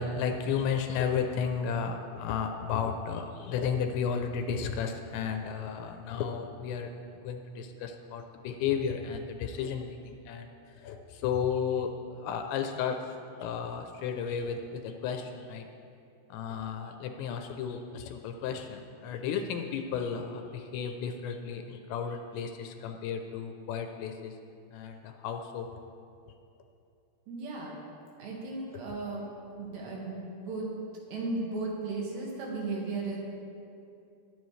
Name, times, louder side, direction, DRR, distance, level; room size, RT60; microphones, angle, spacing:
voice 1, 0.0-6.9 7.2-10.5 10.7-13.0 13.4-15.7 16.3-24.3 24.7-25.7, left 6 dB, 80° left, 5 dB, 2.8 m, -33 dB
voice 2, 27.3-27.7 28.2-29.2 29.6-30.7 31.1-33.2, right 3 dB, 70° right, -3 dB, 3.7 m, -35 dB
20.5 x 9.9 x 3.2 m, 2.6 s
omnidirectional pair, 5.4 m